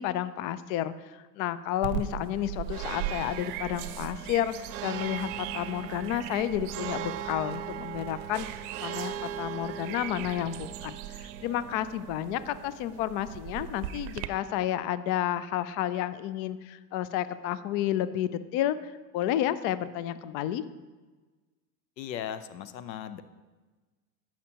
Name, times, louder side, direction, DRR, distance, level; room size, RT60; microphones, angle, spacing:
voice 1, 0.0-20.6, left 12 dB, 45° left, 14 dB, 0.4 m, -31 dB
sound 1, 1.8-14.3, right 10 dB, 65° right, 0.7 m, -37 dB
sound 2, 4.5-10.6, right 6 dB, 35° right, 1.0 m, -54 dB
voice 2, 22.0-23.2, left 9 dB, 90° left, 13 dB, 0.7 m, -37 dB
13.5 x 5.8 x 2.9 m, 1.3 s
hypercardioid pair, 100°, 50 cm